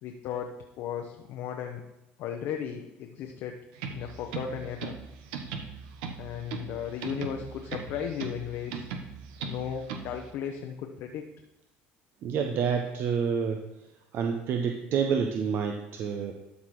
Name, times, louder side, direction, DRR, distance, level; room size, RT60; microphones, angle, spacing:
voice 1, 0.0-1.8 2.2-3.6 3.9-5.0 6.2-8.9 9.4-11.2, left 8 dB, 65° left, 3 dB, 0.8 m, -35 dB
sound 1, 3.7-10.3, right 6 dB, 85° right, 1.0 m, -39 dB
voice 2, 12.2-13.6 14.1-16.3, right 6 dB, 55° right, 4 dB, 0.8 m, -28 dB
12.5 x 4.2 x 4.8 m, 0.96 s
supercardioid pair, 90°, 5 cm